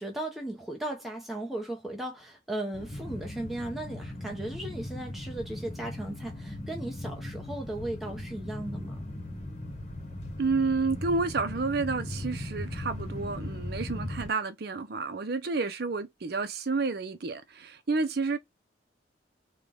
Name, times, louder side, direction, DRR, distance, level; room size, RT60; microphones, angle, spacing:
voice 1, 0.0-9.0, right 1 dB, ahead, 0.7 m, -36 dB
sound 1, 2.7-14.3, left 1 dB, 35° left, 1.0 m, -38 dB
voice 2, 10.4-18.4, right 4 dB, 55° right, 0.6 m, -30 dB
3.8 x 2.2 x 3.3 m
head